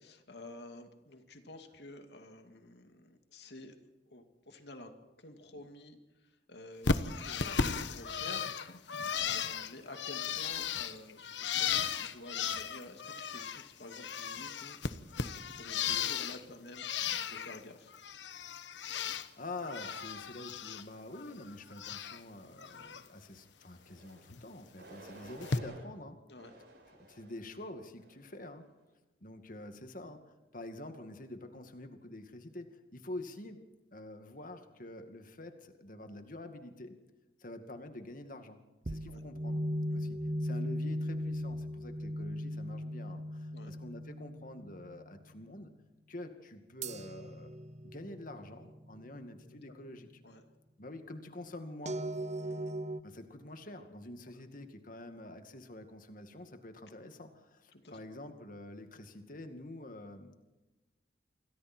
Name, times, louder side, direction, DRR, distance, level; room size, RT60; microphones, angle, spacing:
voice 1, 0.0-3.7 4.1-4.9 5.2-6.0 6.5-8.5 8.8-16.9 17.2-18.0 26.3-26.5 39.1-39.2 39.9-40.2 43.5-43.7 50.2-50.4 52.4-52.8 57.7-58.0, left 1 dB, 70° left, 6 dB, 2.5 m, -51 dB
Bird, 6.8-13.6 13.9-16.4 16.7-17.6 17.9-19.3 19.6-20.8 21.1-22.2 22.6-23.0 24.3-24.4 25.4-25.6, left 6 dB, 90° left, 1.2 m, -35 dB
voice 2, 18.8-26.2 27.1-28.6 29.2-33.7 33.9-37.0 37.4-38.6 38.9-39.6 39.9-45.7 46.1-47.5 47.8-50.1 50.8-52.0 53.0-60.4, left 1 dB, 50° left, 7 dB, 2.3 m, -47 dB
sound 1, 23.8-24.2 24.8-25.8 26.4-27.4 28.0-28.4, right 1 dB, 65° right, 8.0 m, -53 dB
sound 2, 38.9-45.1 46.8-49.6 51.9-53.0, equal, 40° right, 0.9 m, -38 dB
28.0 x 24.0 x 4.5 m, 1.1 s
head